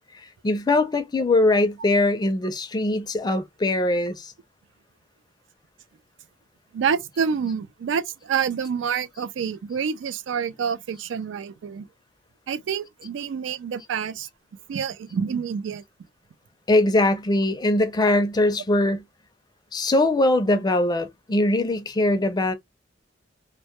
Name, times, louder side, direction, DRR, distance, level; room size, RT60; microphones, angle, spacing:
voice 1, 0.4-4.3 16.7-19.0 19.7-22.5, left 2 dB, 20° left, 0.4 m, -21 dB
voice 2, 6.7-11.9 12.5-14.3 14.7-15.8, right 7 dB, 90° right, 0.3 m, -27 dB
2.1 x 2.0 x 2.8 m
head